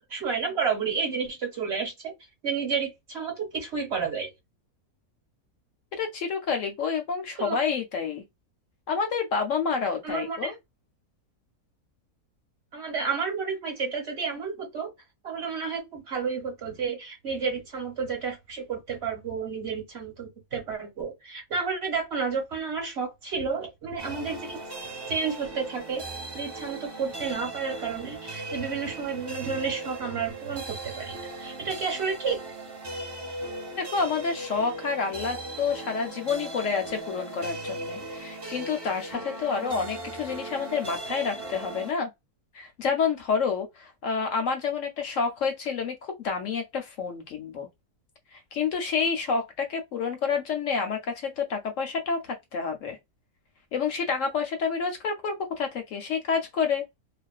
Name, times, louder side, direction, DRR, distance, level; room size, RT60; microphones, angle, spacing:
voice 1, 0.1-2.1 2.4-4.3 7.4-7.6 10.0-10.5 12.7-14.9 15.2-24.6 25.1-26.0 26.3-32.4, right 5 dB, 50° right, 1.0 m, -31 dB
voice 2, 6.0-8.2 8.9-10.6 33.8-42.1 42.5-47.7 48.3-53.0 53.7-56.9, left 5 dB, 65° left, 0.9 m, -29 dB
sound 1, 24.0-41.9, right 2 dB, 25° right, 0.5 m, -38 dB
2.4 x 2.3 x 2.3 m
omnidirectional pair, 1.6 m